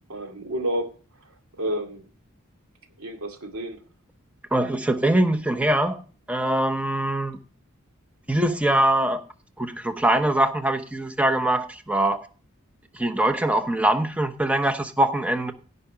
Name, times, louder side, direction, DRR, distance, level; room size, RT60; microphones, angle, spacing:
voice 1, 0.1-2.1 3.0-3.8, right 1 dB, 85° right, 2.6 m, -31 dB
voice 2, 4.5-6.0 6.3-7.4 8.3-9.2 9.6-12.2 12.9-15.5, right 1 dB, 5° right, 0.9 m, -23 dB
16.5 x 5.6 x 4.9 m
head